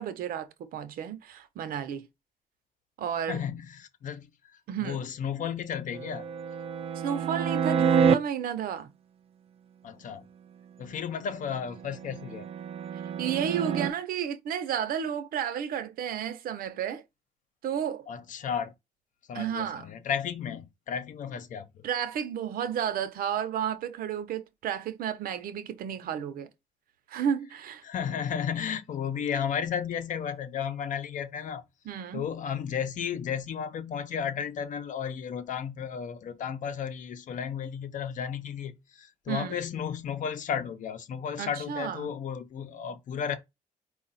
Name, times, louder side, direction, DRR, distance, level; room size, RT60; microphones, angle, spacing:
voice 1, 0.0-2.1 3.0-3.4 4.7-5.0 6.9-8.9 13.2-17.0 17.6-18.1 19.3-19.9 21.8-26.5 27.1-27.8 31.8-32.2 39.3-39.6 41.4-42.1, right 8 dB, 85° right, 0.7 m, -32 dB
voice 2, 3.3-4.3 4.8-6.2 8.0-8.1 9.8-10.3 10.8-12.5 18.1-18.7 19.3-21.8 27.8-31.6 32.1-43.4, left 7 dB, 65° left, 0.8 m, -33 dB
sound 1, 5.9-8.2 11.5-13.9, right 7 dB, 45° right, 0.4 m, -28 dB
4.8 x 2.4 x 4.0 m
cardioid pair, 150°, 15 cm